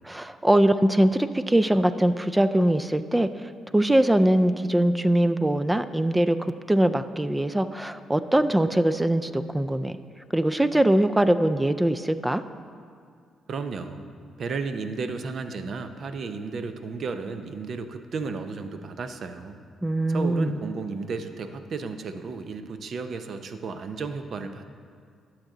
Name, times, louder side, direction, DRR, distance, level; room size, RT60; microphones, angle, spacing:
voice 1, 0.0-3.3 3.7-10.0 10.3-12.4 19.8-20.6, right 1 dB, 10° right, 11 dB, 0.3 m, -22 dB
voice 2, 13.5-14.1 14.4-19.6 20.1-24.6, right 4 dB, 55° right, 8 dB, 0.6 m, -33 dB
11.5 x 7.3 x 3.9 m, 2.2 s
cardioid pair, 90°, 0 cm